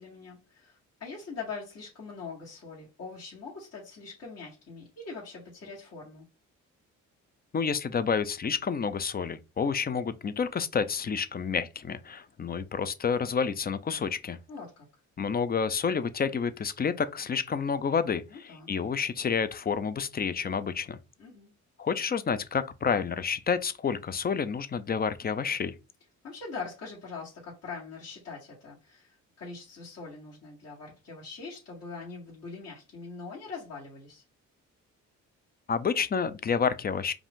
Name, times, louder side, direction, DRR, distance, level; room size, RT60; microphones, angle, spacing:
voice 1, 0.0-6.2 14.5-14.9 18.3-18.7 21.2-21.5 26.2-34.2, left 4 dB, 55° left, 2.0 m, -42 dB
voice 2, 7.5-14.4 15.2-21.0 21.8-25.7 35.7-37.1, left 6 dB, 30° left, 0.5 m, -29 dB
4.9 x 2.6 x 3.6 m
cardioid pair, 90°, 30 cm